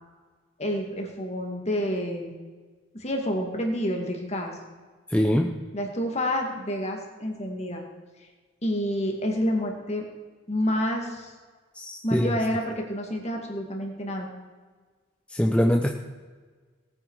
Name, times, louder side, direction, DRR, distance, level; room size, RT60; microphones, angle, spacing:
voice 1, 0.6-2.3 2.9-4.6 5.7-7.8 8.6-10.1 10.5-11.3 12.0-14.3, equal, 30° left, 2 dB, 2.2 m, -28 dB
voice 2, 5.1-5.5 11.8-12.3 15.3-15.9, equal, 5° left, 3 dB, 0.6 m, -23 dB
18.5 x 9.2 x 4.8 m, 1.4 s
head